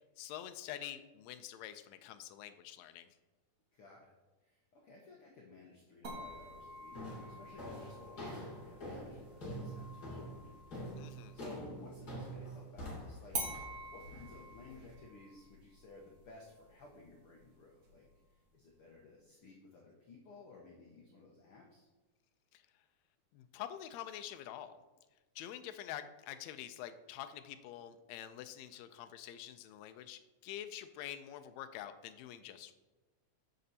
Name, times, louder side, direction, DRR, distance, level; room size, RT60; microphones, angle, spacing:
voice 1, 0.2-3.1 11.0-11.4 22.5-22.6 23.3-24.8 25.3-32.8, left 11 dB, 85° left, 9 dB, 1.5 m, -47 dB
voice 2, 3.7-4.1 4.4-10.6 10.9-13.4 13.9-21.9, left 3 dB, 65° left, -2 dB, 1.4 m, -56 dB
glass-ding, 6.0-11.6 13.3-18.3, right 2 dB, 45° right, 1.4 m, -48 dB
sound 1, 6.1-6.4 6.9-14.9, equal, 30° left, 2.6 m, -46 dB
14.5 x 5.1 x 2.8 m, 1.2 s
omnidirectional pair, 3.7 m